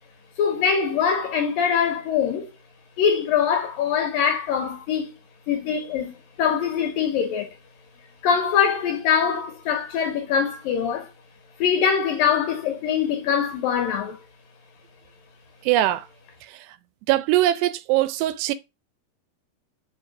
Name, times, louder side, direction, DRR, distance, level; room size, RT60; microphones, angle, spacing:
voice 1, 0.4-2.5 3.0-5.1 5.5-7.5 8.2-11.1 11.6-14.2, left 7 dB, 70° left, 2.3 m, -23 dB
voice 2, 15.7-16.1 16.5-16.6 17.1-18.5, right 14 dB, 80° right, 2.7 m, -21 dB
5.9 x 5.0 x 4.7 m
omnidirectional pair, 4.9 m